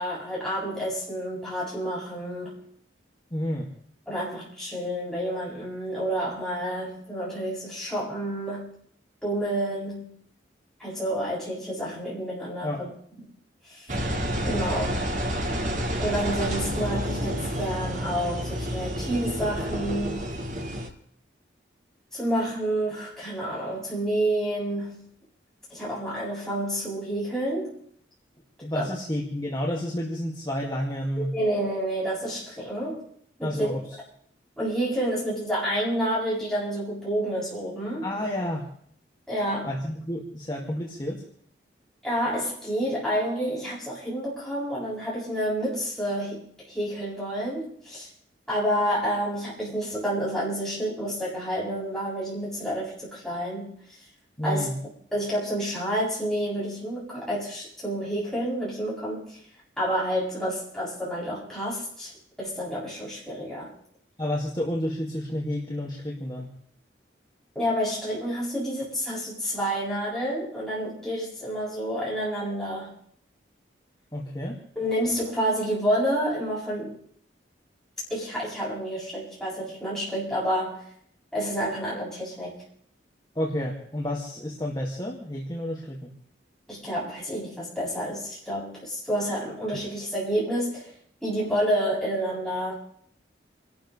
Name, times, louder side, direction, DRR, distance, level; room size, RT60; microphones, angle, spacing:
voice 1, 0.0-2.6 4.1-8.7 9.2-10.1 10.8-12.9 13.6-13.9 14.4-15.1 16.0-20.2 22.1-25.1 25.7-27.8 28.7-28.9 31.2-33.0 33.4-33.7 34.6-38.1 39.3-39.8 42.0-48.1 48.5-53.7 54.4-54.7 55.1-59.4 59.8-62.1 62.4-63.7 67.5-72.9 74.7-76.9 78.1-80.8 81.3-82.6 86.7-90.9 91.2-92.7, equal, 5° left, -9 dB, 8.0 m, -29 dB
voice 2, 3.3-3.7 12.6-12.8 28.6-31.3 33.4-33.9 38.0-38.7 39.6-41.2 54.4-54.7 64.2-66.5 74.1-74.6 83.4-86.1, left 1 dB, 20° left, -3 dB, 2.2 m, -30 dB
Engine, 13.9-20.9, equal, 40° right, 2.0 m, -29 dB
29.0 x 13.0 x 3.3 m, 0.62 s
head